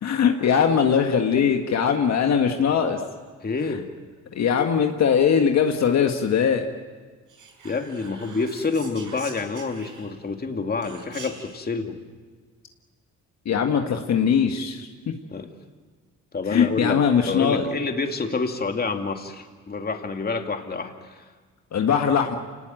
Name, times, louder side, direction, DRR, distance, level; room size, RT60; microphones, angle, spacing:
voice 1, 0.0-3.0 4.3-6.6 13.5-15.2 16.5-17.7 21.7-22.4, left 7 dB, 60° left, 4 dB, 1.7 m, -21 dB
voice 2, 3.4-3.9 7.6-12.0 15.3-15.5 16.3-21.3, left 4 dB, 30° left, 5 dB, 2.5 m, -28 dB
Whispering, 7.3-10.3 10.8-11.6, right 5 dB, 80° right, 6.1 m, -44 dB
27.5 x 19.0 x 9.1 m, 1.5 s
cardioid pair, 90°, 30 cm